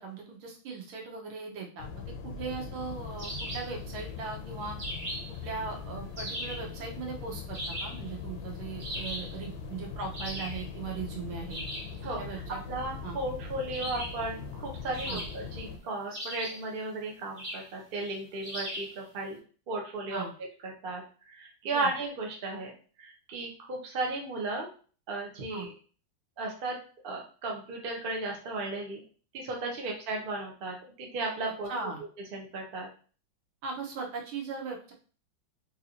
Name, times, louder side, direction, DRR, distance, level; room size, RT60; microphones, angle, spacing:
voice 1, 0.0-4.8 5.4-11.6 12.2-12.6 13.0-13.2 15.1-15.2 20.1-20.3 21.7-21.9 25.5-25.7 31.7-32.0 33.6-34.9, right 4 dB, 80° right, 1 dB, 1.7 m, -39 dB
sound 1, 1.8-15.8, left 5 dB, 80° left, 1.4 m, -41 dB
sound 2, 3.2-3.8 4.8-5.4 6.2-6.7 7.5-8.1 8.8-9.4 10.1-10.6 11.5-12.0 13.7-14.3 14.9-15.6 16.1-16.7 17.4-17.7 18.4-19.0, equal, 40° right, 1.0 m, -38 dB
voice 2, 12.0-12.4 12.7-19.4 19.7-20.2 20.6-21.0 21.3-22.7 23.0-24.7 25.1-25.7 26.4-26.8 27.0-29.0 29.3-31.9 32.3-32.9, right 2 dB, 60° right, 0 dB, 0.5 m, -35 dB
3.8 x 2.7 x 2.8 m, 0.40 s
omnidirectional pair, 2.2 m